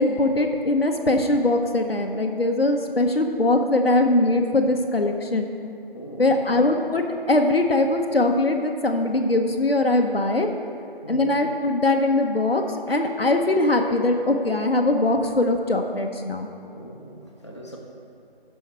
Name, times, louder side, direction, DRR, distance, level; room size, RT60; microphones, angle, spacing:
voice 1, 0.0-5.5 6.2-10.5 11.1-16.5, left 2 dB, 70° left, 4 dB, 1.0 m, -21 dB
voice 2, 5.9-6.5 11.0-11.4 16.7-17.8, right 1 dB, 30° left, -3 dB, 0.9 m, -40 dB
13.5 x 5.6 x 4.6 m, 2.7 s
figure-of-eight pair, 175°, 30 cm